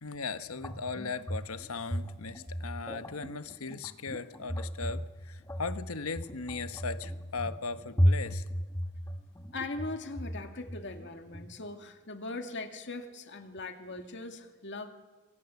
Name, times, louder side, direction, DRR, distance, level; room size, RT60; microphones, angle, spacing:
voice 1, 0.0-8.4, left 4 dB, 85° left, 11 dB, 1.2 m, -38 dB
sound 1, 0.5-11.5, equal, 15° left, 1.8 m, -34 dB
voice 2, 9.5-14.9, left 2 dB, 55° left, 5 dB, 2.2 m, -40 dB
26.5 x 22.5 x 7.1 m, 1.3 s
head